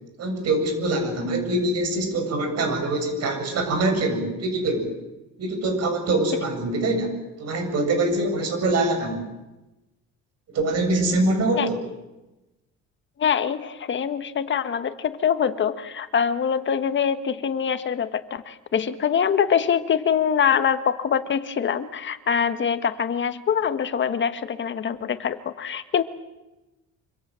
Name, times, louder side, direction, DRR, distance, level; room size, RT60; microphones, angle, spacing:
voice 1, 0.2-4.9 5.4-9.2 10.5-11.8, right 2 dB, 55° right, 5 dB, 7.6 m, -24 dB
voice 2, 13.2-26.0, left 7 dB, 40° left, 11 dB, 1.5 m, -24 dB
26.5 x 26.0 x 7.7 m, 1.0 s
cardioid pair, 160°, 30 cm